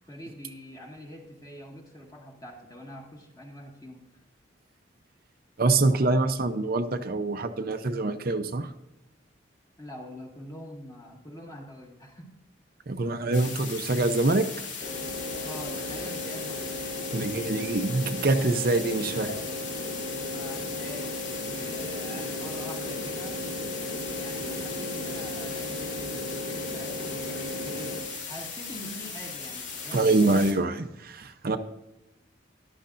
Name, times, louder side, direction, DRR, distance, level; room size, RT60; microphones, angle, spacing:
voice 1, 0.1-4.2 9.8-12.3 15.4-16.9 20.3-23.4 24.1-28.0 28.3-30.1 31.5-31.6, equal, 20° left, 0 dB, 1.8 m, -44 dB
voice 2, 5.6-8.7 12.9-14.7 17.1-19.3 29.9-31.6, right 2 dB, 50° right, 7 dB, 0.7 m, -25 dB
sound 1, 13.3-30.5, left 5 dB, 75° left, 2.4 m, -38 dB
sound 2, 14.8-28.0, left 1 dB, 60° left, 3.1 m, -36 dB
14.0 x 11.0 x 2.6 m, 0.92 s
head